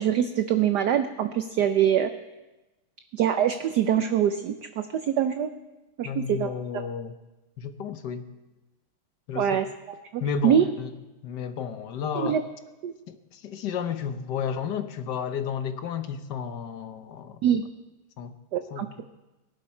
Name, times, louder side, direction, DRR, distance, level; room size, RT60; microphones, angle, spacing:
voice 1, 0.0-2.1 3.1-5.5 6.0-6.5 9.3-10.6 12.1-12.4 12.8-12.9 17.4-17.6 18.5-19.0, right 9 dB, 70° right, 9 dB, 1.0 m, -24 dB
voice 2, 6.0-7.1 7.6-8.2 9.3-9.6 10.2-10.9 11.2-12.4 13.1-17.4 18.2-18.3 18.7-19.0, left 7 dB, 60° left, 9 dB, 1.4 m, -32 dB
23.5 x 11.5 x 4.4 m, 1.1 s
omnidirectional pair, 2.3 m